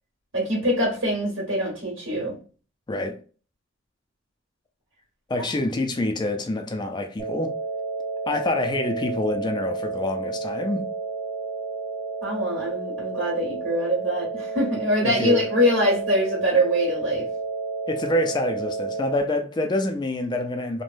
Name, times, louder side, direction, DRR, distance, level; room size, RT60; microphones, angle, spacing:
voice 1, 0.3-2.3 12.2-17.3, equal, 75° right, 1.4 m, -23 dB
voice 2, 2.9-3.2 5.3-7.5 8.3-10.9 15.0-15.4 17.9-20.8, left 1 dB, 20° left, 0.3 m, -26 dB
sound 1, 7.2-19.2, right 4 dB, 60° right, 1.3 m, -31 dB
3.2 x 2.1 x 2.5 m
head